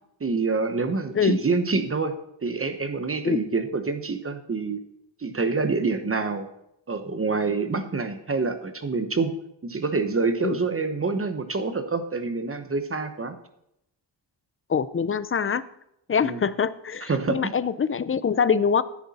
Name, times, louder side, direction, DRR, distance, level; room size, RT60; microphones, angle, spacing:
voice 1, 0.2-2.1 2.4-4.8 5.2-6.5 6.9-9.3 9.6-13.4 16.2-16.4 17.0-17.5, right 4 dB, 30° right, 9 dB, 0.9 m, -26 dB
voice 2, 14.7-15.7 16.1-18.8, left 6 dB, 30° left, 16 dB, 0.5 m, -24 dB
12.5 x 10.5 x 4.2 m, 0.80 s
wide cardioid pair, 135°, 45 cm